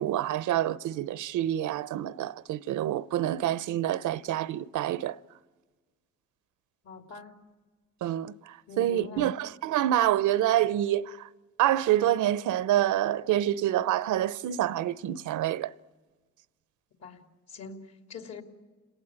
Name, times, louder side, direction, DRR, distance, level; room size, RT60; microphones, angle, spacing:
voice 1, 0.0-5.2 8.0-11.3 11.6-15.7, right 12 dB, 80° right, 0.7 m, -27 dB
voice 2, 6.8-7.4 8.7-9.3 17.0-17.2 17.5-18.4, left 5 dB, 60° left, 3.3 m, -43 dB
30.0 x 18.5 x 9.6 m
cardioid pair, 90°, 30 cm